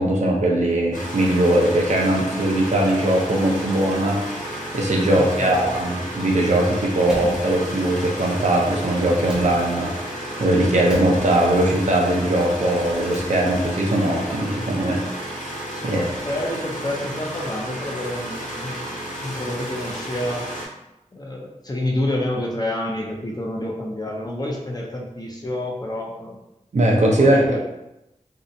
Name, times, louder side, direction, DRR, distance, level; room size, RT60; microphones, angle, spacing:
voice 1, 0.0-15.4 15.8-16.1 26.7-27.4, right 1 dB, 65° right, -2 dB, 0.6 m, -20 dB
sound 1, 0.9-20.7, right 1 dB, 75° left, 0.6 m, -32 dB
voice 2, 5.2-5.8 15.7-18.9 19.2-20.5 21.1-26.4 27.1-27.6, left 1 dB, 30° left, -1 dB, 0.5 m, -28 dB
Slam, 7.1-8.2 9.2-10.1 10.9-11.8 12.9-13.8, equal, 5° right, 0.7 m, -37 dB
2.7 x 2.1 x 2.5 m, 0.92 s
wide cardioid pair, 70°, 13 cm